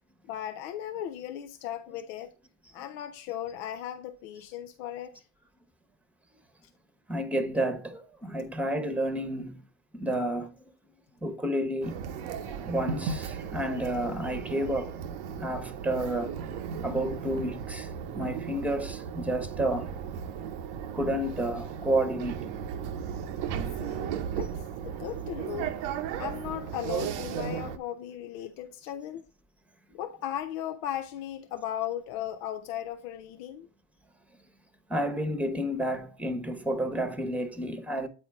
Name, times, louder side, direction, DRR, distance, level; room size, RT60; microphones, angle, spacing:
voice 1, 0.3-2.3 2.7-5.2 23.8-25.7 26.2-29.2 29.9-33.7, left 11 dB, 85° left, 0.6 m, -37 dB
voice 2, 7.1-9.6 9.9-10.5 11.2-12.0 12.4-15.0 15.3-16.4 16.8-19.9 20.9-22.5 34.9-38.1, right 1 dB, 5° right, 0.9 m, -30 dB
sound 1, 11.8-27.8, right 7 dB, 85° right, 0.8 m, -35 dB
8.2 x 4.4 x 3.5 m
supercardioid pair, 70°, 44 cm